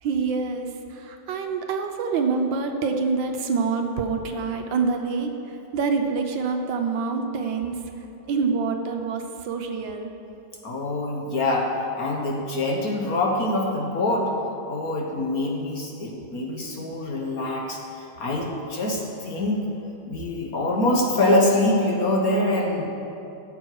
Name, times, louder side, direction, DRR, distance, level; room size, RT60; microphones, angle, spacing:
voice 1, 0.0-7.8 8.3-10.1, right 4 dB, 70° right, 5 dB, 1.4 m, -26 dB
voice 2, 10.6-14.3 14.7-17.8 18.2-19.6 20.1-22.8, left 1 dB, 50° left, 0 dB, 1.5 m, -24 dB
15.5 x 7.0 x 4.7 m, 2.8 s
omnidirectional pair, 2.2 m